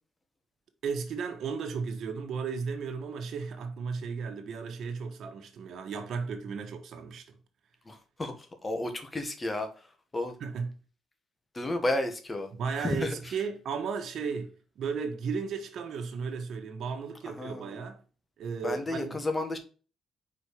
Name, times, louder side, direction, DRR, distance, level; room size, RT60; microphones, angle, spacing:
voice 1, 0.8-7.3 10.4-10.8 12.5-18.0 18.4-19.2, right 5 dB, 65° right, 1.3 m, -35 dB
voice 2, 7.8-9.7 10.1-10.3 11.5-12.5 12.8-13.3 17.2-17.8 18.6-19.6, left 2 dB, 25° left, 1.6 m, -32 dB
4.9 x 4.5 x 5.0 m
cardioid pair, 90°, 0 cm